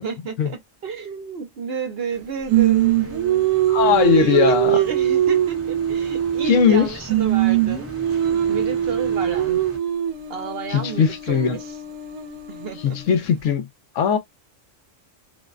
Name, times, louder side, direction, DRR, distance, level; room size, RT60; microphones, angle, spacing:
voice 1, 0.0-9.6 10.3-11.8 12.5-13.0, right 6 dB, 55° right, 0.9 m, -32 dB
sound 1, 2.5-9.8, equal, 20° right, 0.4 m, -42 dB
Singing, 2.5-6.8 7.1-13.1, right 12 dB, 80° right, 1.0 m, -22 dB
voice 2, 3.7-4.8 6.4-6.9 10.7-11.6 12.8-13.7 13.9-14.2, left 7 dB, 75° left, 1.0 m, -19 dB
2.6 x 2.1 x 2.3 m
omnidirectional pair, 1.3 m